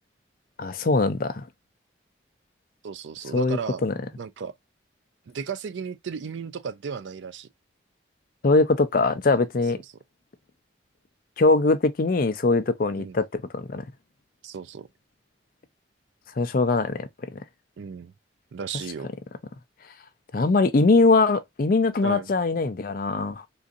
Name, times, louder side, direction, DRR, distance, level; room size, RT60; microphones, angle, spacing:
voice 1, 0.6-1.4 3.3-3.9 8.4-9.8 11.4-13.8 16.4-17.4 20.3-23.4, left 3 dB, 45° left, 0.4 m, -22 dB
voice 2, 2.8-3.8 4.2-4.5 5.3-7.5 9.7-9.8 13.0-13.2 14.4-14.9 17.8-18.1 18.5-19.1 22.0-22.3, right 6 dB, 70° right, 0.4 m, -35 dB
3.8 x 2.6 x 2.4 m
head